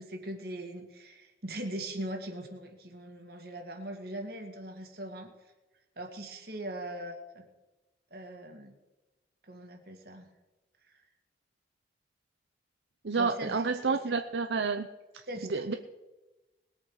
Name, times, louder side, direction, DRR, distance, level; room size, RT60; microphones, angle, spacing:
voice 1, 0.0-5.3 6.0-7.5 8.1-8.7 9.4-10.3 13.1-14.0 15.3-15.8, right 1 dB, 55° right, 4 dB, 2.1 m, -40 dB
voice 2, 13.0-14.9 15.5-15.7, right 4 dB, 75° right, 7 dB, 0.7 m, -29 dB
20.5 x 8.5 x 4.9 m, 1.1 s
head